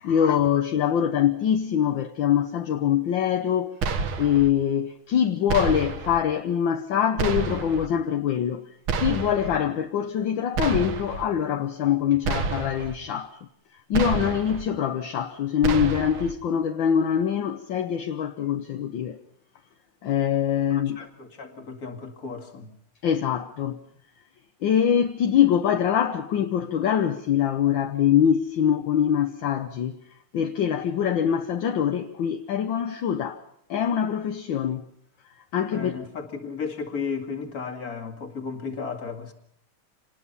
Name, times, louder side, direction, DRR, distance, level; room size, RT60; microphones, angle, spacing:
voice 1, 0.0-3.7 4.2-8.6 9.0-13.4 13.9-19.2 20.0-21.0 23.0-23.8 24.6-29.9 30.3-33.4 33.7-34.8 35.5-35.9, left 9 dB, 70° left, 1.7 m, -24 dB
sound 1, 3.8-4.5 5.5-6.2 7.2-7.9 8.9-9.6 10.6-11.3 12.2-12.9 13.9-14.6 15.6-16.3, right 5 dB, 85° right, 2.4 m, -28 dB
voice 2, 20.7-22.8 35.7-39.3, left 5 dB, 45° left, 2.6 m, -34 dB
26.5 x 19.5 x 5.4 m
omnidirectional pair, 2.3 m